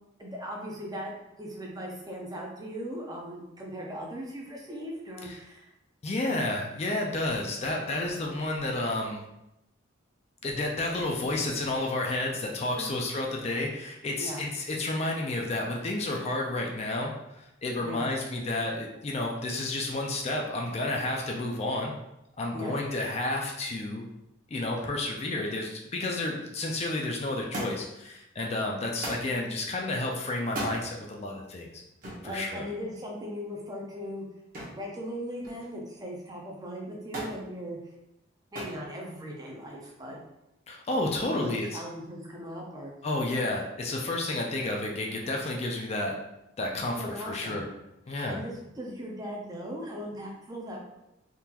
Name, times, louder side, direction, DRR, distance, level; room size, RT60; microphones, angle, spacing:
voice 1, 0.2-1.1 1.4-5.7 12.7-13.0 14.2-14.5 17.7-18.1 22.5-22.8 32.2-34.3 34.7-37.8 38.5-40.2 41.2-42.9 46.7-47.7 48.1-50.8, equal, 20° right, -1 dB, 0.5 m, -38 dB
voice 2, 6.0-9.2 10.4-21.9 22.4-24.0 24.5-31.8 32.2-32.6 40.7-41.8 43.0-46.2 46.6-47.6 48.1-48.4, left 2 dB, 30° left, 0 dB, 0.4 m, -31 dB
Thump thud, 27.5-28.0 29.0-29.3 30.4-30.8 32.0-32.3 34.5-34.9 35.2-35.8 37.1-37.4 38.5-38.8 39.8-40.2 41.2-41.3, right 1 dB, 45° right, 0.9 m, -36 dB
3.6 x 2.4 x 2.9 m, 0.88 s
head